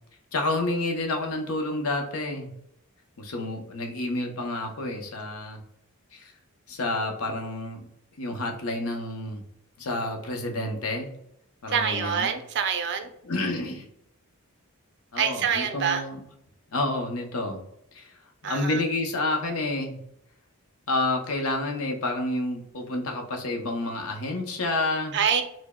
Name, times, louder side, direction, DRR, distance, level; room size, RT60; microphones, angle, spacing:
voice 1, 0.3-2.5 3.2-5.6 6.1-6.3 6.7-7.9 8.2-9.4 9.8-11.1 11.6-12.3 13.2-13.8 15.1-16.2 16.7-17.6 17.9-18.2 18.4-20.0 20.9-25.2, left 2 dB, 70° left, 3 dB, 0.7 m, -29 dB
voice 2, 11.7-13.1 15.2-16.0 18.4-18.8 25.1-25.4, right 7 dB, 50° right, 7 dB, 0.4 m, -26 dB
4.7 x 2.0 x 2.2 m, 0.73 s
head